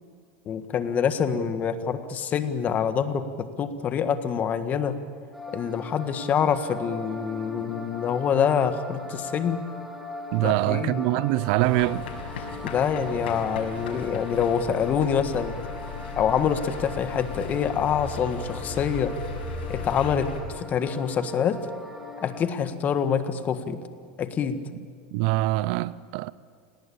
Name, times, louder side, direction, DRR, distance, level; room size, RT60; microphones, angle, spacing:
voice 1, 0.4-4.9 5.5-9.6 10.4-11.0 12.6-15.5 16.2-19.1 19.7-20.3 20.5-21.6 22.2-23.8 24.2-24.6, left 7 dB, 30° left, 1.7 m, -26 dB
sound 1, 5.3-22.5, left 2 dB, 5° right, 3.0 m, -40 dB
voice 2, 10.3-12.1 24.7-24.9 25.1-26.3, right 18 dB, 60° right, 0.7 m, -24 dB
sound 2, 11.6-20.4, left 4 dB, 90° left, 6.8 m, -37 dB
29.0 x 19.0 x 8.6 m
supercardioid pair, 135°, 5 cm